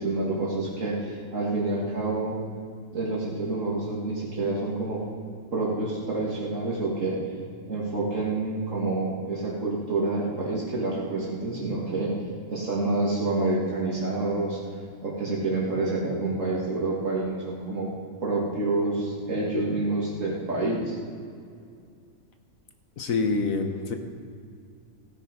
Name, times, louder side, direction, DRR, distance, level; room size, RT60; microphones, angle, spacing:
voice 1, 0.0-2.3 2.9-5.0 5.5-7.2 7.7-12.1 12.5-14.6 15.0-17.9 18.2-20.9, right 2 dB, 60° right, -4 dB, 2.2 m, -28 dB
voice 2, 23.0-24.0, left 4 dB, 65° left, 6 dB, 1.5 m, -26 dB
16.0 x 9.0 x 5.1 m, 2.3 s
omnidirectional pair, 1.5 m